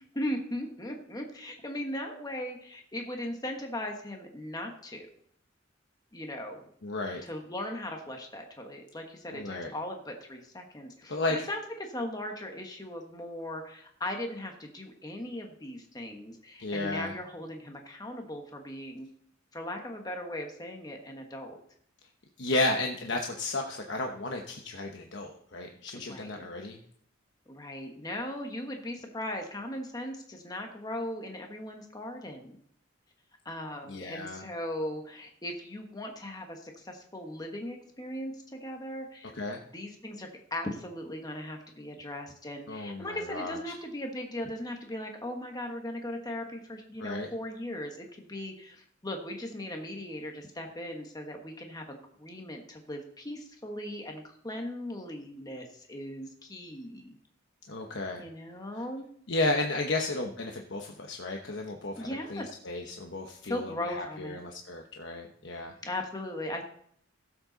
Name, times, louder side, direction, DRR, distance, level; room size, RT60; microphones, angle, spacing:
voice 1, 0.1-5.1 6.1-6.6 7.2-19.1 19.5-21.6 25.9-26.4 27.5-32.6 33.4-39.3 39.7-57.1 58.2-59.1 62.0-62.5 63.4-64.4 65.8-66.6, left 1 dB, 20° left, 3 dB, 1.3 m, -38 dB
voice 2, 6.8-7.2 9.3-9.7 11.1-11.5 16.6-17.1 22.4-26.8 33.9-34.5 39.3-39.6 42.7-43.6 47.0-47.3 57.7-58.2 59.3-65.8, left 2 dB, 60° left, 2 dB, 1.0 m, -33 dB
16.5 x 7.8 x 4.0 m, 0.65 s
head